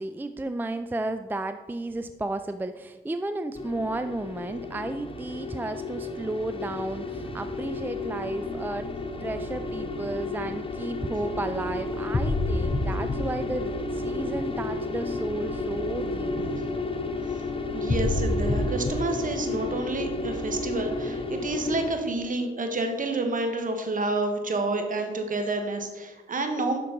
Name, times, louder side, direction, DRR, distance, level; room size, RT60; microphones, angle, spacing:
voice 1, 0.0-8.9 9.2-16.6, right 2 dB, 10° right, 9 dB, 0.4 m, -33 dB
sound 1, 3.5-21.9, left 2 dB, 30° left, 0.8 m, -31 dB
voice 2, 17.7-26.8, right 2 dB, 50° right, 5 dB, 1.3 m, -29 dB
7.1 x 6.1 x 3.9 m, 1.2 s
supercardioid pair, 50°, 18 cm